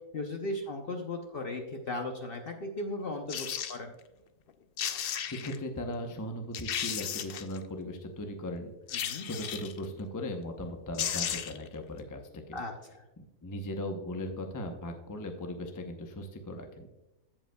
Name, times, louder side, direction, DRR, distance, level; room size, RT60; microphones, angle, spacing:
voice 1, 0.1-3.9 8.9-9.3 12.5-13.0, left 2 dB, 50° left, 4 dB, 0.7 m, -37 dB
sound 1, 3.3-3.8 4.5-4.6 4.8-5.6 6.1-6.2 6.5-7.6 8.9-9.8 10.6-10.7 10.9-11.7 12.0-12.1, left 9 dB, 85° left, 0.5 m, -34 dB
voice 2, 5.4-8.7 9.2-12.6 13.4-16.9, left 1 dB, 20° left, 4 dB, 0.5 m, -38 dB
15.5 x 5.2 x 2.2 m, 0.98 s
omnidirectional pair, 1.6 m